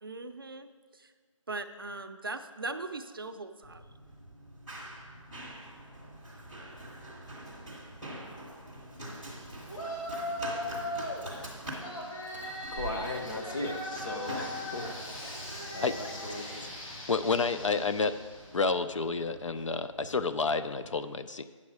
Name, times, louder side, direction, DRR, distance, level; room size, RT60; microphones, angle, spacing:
voice 1, 0.0-1.1 1.5-3.8, right 3 dB, 45° right, 8 dB, 0.5 m, -40 dB
Run, 3.6-20.9, right 1 dB, 5° left, 0.8 m, -45 dB
Yell, 9.7-11.2 11.8-18.5, left 1 dB, 85° left, 3.1 m, -39 dB
voice 2, 12.7-15.4 15.7-16.6, left 2 dB, 40° left, 2 dB, 1.1 m, -38 dB
voice 3, 17.1-18.2 18.5-21.4, left 4 dB, 65° left, 11 dB, 0.4 m, -29 dB
9.6 x 7.3 x 4.8 m, 1.5 s
figure-of-eight pair, 175°, 17 cm